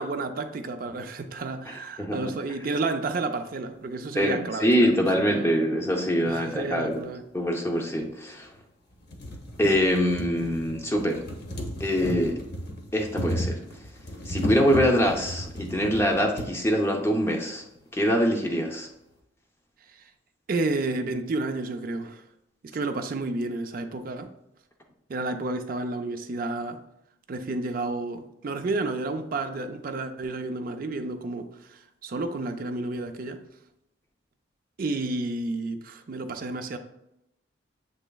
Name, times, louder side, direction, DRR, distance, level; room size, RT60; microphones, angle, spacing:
voice 1, 0.0-5.6 6.2-7.2 19.9-20.1 20.5-22.2 22.6-24.3 25.1-26.8 27.3-33.4 34.8-36.8, right 2 dB, 45° right, 7 dB, 0.4 m, -31 dB
voice 2, 1.7-2.3 4.2-7.0 7.3-8.5 9.6-11.2 11.8-12.4 12.9-13.6 14.3-17.6 17.9-18.9, equal, 15° left, 1 dB, 0.5 m, -24 dB
sound 1, 6.9-7.0 8.0-8.1 8.5-8.6 8.9-16.5 17.4-17.5 17.8-17.9, equal, 55° left, 0.9 m, -34 dB
7.5 x 3.0 x 2.3 m, 0.85 s
head